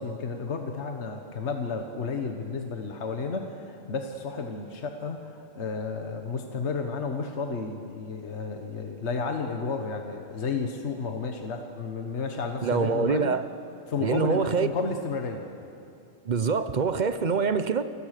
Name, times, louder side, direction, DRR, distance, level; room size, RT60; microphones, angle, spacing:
voice 1, 0.0-13.3 13.9-15.4, left 4 dB, 55° left, 4 dB, 1.5 m, -32 dB
voice 2, 12.6-13.4 14.0-14.7 16.2-17.8, right 5 dB, 40° right, 11 dB, 0.8 m, -25 dB
30.0 x 18.5 x 6.7 m, 2.7 s
omnidirectional pair, 1.4 m